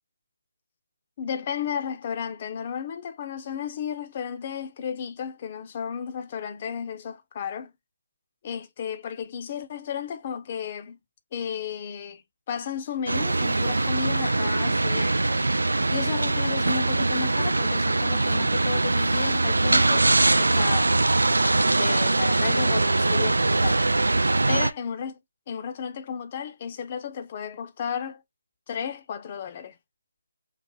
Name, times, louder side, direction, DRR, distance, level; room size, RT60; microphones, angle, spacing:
voice 1, 1.2-7.7 8.4-11.0 11.3-12.2 12.5-15.4 15.9-20.9 21.7-23.8 24.5-25.2 25.5-28.2 28.7-29.8, left 7 dB, 35° left, 0.6 m, -33 dB
sound 1, 13.1-24.7, right 2 dB, 75° right, 0.3 m, -22 dB
3.3 x 2.0 x 3.8 m
figure-of-eight pair, 150°, 0 cm